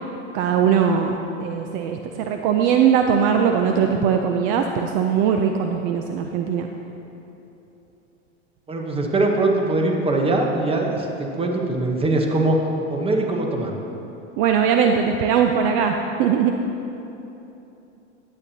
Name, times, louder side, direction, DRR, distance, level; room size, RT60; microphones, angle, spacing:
voice 1, 0.3-6.7 14.4-16.5, right 7 dB, 45° right, 4 dB, 0.5 m, -20 dB
voice 2, 8.7-13.7, right 2 dB, 15° right, 1 dB, 0.9 m, -22 dB
11.5 x 8.7 x 2.8 m, 3.0 s
hypercardioid pair, 115°, 38 cm